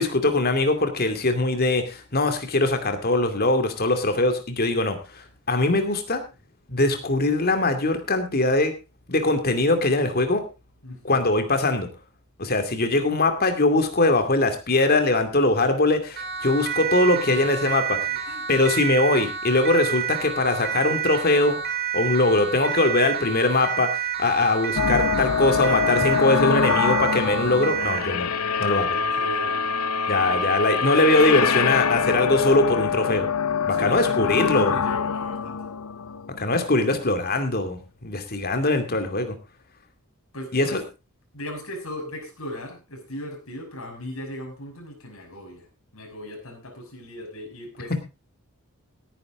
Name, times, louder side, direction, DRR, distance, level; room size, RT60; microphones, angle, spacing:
voice 1, 0.0-6.2 6.7-8.7 9.1-10.4 11.0-11.9 12.4-18.0 18.5-21.6 21.9-28.3 28.6-28.9 30.1-33.3 33.7-34.7 36.4-39.4 40.5-40.8, left 2 dB, 45° left, 7 dB, 2.5 m, -22 dB
voice 2, 10.8-11.3 17.3-17.7 18.1-18.4 28.8-29.6 33.7-35.6 40.3-40.8 41.3-45.7 45.9-48.0, left 1 dB, 70° left, 2 dB, 6.1 m, -38 dB
Siren, 16.2-28.1, right 7 dB, 45° right, 4.3 m, -29 dB
sound 1, 24.7-36.9, left 6 dB, 85° left, 0.8 m, -24 dB
17.0 x 10.0 x 3.7 m, 0.28 s
head